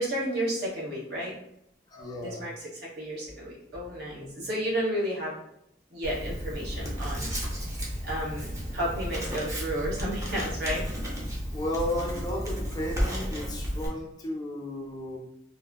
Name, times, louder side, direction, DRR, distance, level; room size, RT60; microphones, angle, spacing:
voice 1, 0.0-1.3 2.2-2.7 2.9-5.3 5.9-7.3 8.0-10.8, right 1 dB, 60° right, -5 dB, 1.3 m, -32 dB
voice 2, 1.9-2.5 4.2-4.5 11.5-15.2, left 1 dB, 20° left, 0 dB, 0.4 m, -34 dB
Writing, 6.0-13.9, equal, 20° right, 0.7 m, -33 dB
3.5 x 2.6 x 2.2 m, 0.79 s
head